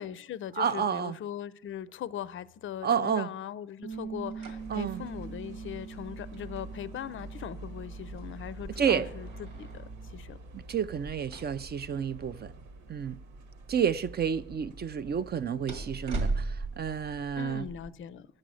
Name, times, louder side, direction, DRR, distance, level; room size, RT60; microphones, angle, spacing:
voice 1, 0.0-9.8 10.1-10.4 17.4-18.3, left 9 dB, 40° left, 0.4 m, -40 dB
voice 2, 0.6-1.2 2.8-3.3 4.7-5.1 8.8-9.1 10.5-12.5 12.9-13.2 13.7-17.6, right 7 dB, 35° right, 0.4 m, -30 dB
sound 1, 3.8-10.1, right 6 dB, 55° right, 0.8 m, -44 dB
sound 2, 3.9-17.9, right 2 dB, 90° right, 1.7 m, -41 dB
sound 3, 4.6-17.2, right 2 dB, 75° right, 1.2 m, -47 dB
10.0 x 7.5 x 6.3 m
cardioid pair, 90°, 30 cm